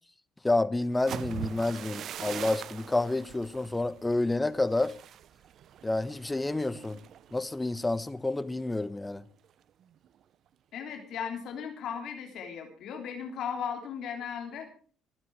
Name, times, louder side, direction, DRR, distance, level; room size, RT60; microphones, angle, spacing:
voice 1, 0.4-5.0 5.8-7.0 7.3-9.2, left 2 dB, 15° left, 1.1 m, -29 dB
sound 1, 0.9-8.8 9.1-9.4 9.8-10.2, right 9 dB, 60° right, 0.7 m, -43 dB
voice 2, 10.7-14.7, left 7 dB, 65° left, 3.3 m, -36 dB
22.5 x 9.5 x 4.7 m
supercardioid pair, 70°, 0 cm